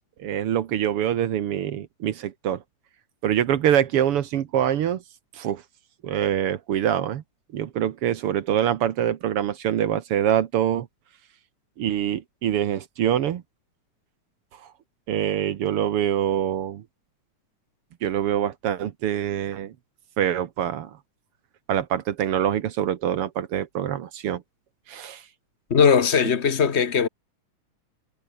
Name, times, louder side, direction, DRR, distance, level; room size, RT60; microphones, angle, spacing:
voice 1, 0.2-2.6 3.2-5.0 5.3-5.6 6.0-7.2 7.5-10.9 11.8-13.4 15.1-16.8 18.0-19.7 20.2-21.0 21.7-24.4 24.9-25.2, right 10 dB, 60° right, 1.7 m, -25 dB
voice 2, 25.7-27.1, left 6 dB, 50° left, 0.7 m, -19 dB
omnidirectional pair, 3.5 m